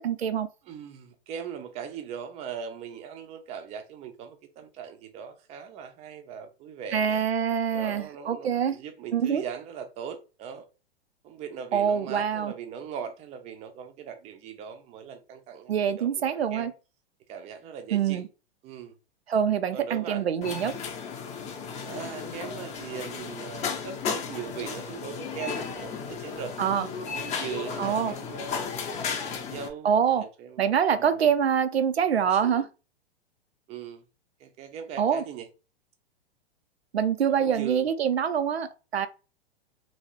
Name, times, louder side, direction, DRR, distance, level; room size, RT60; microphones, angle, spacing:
voice 1, 0.0-0.5 6.9-8.8 9.1-9.4 11.7-12.5 15.7-16.7 17.9-18.3 19.3-20.7 26.6-26.9 27.8-28.1 29.8-30.3 30.6-32.7 35.0-35.2 36.9-39.1, right 8 dB, 80° right, 0.5 m, -25 dB
voice 2, 0.7-7.2 7.7-10.7 11.2-15.7 16.0-16.7 17.3-18.2 18.6-18.9 19.7-20.3 21.9-26.5 27.1-28.7 29.3-31.2 32.4-32.7 33.7-34.0 34.4-35.5 37.4-37.8, right 8 dB, 20° right, 0.5 m, -40 dB
sound 1, 20.4-29.7, left 6 dB, 20° left, 0.6 m, -34 dB
3.1 x 2.7 x 3.0 m
figure-of-eight pair, 105°, 31 cm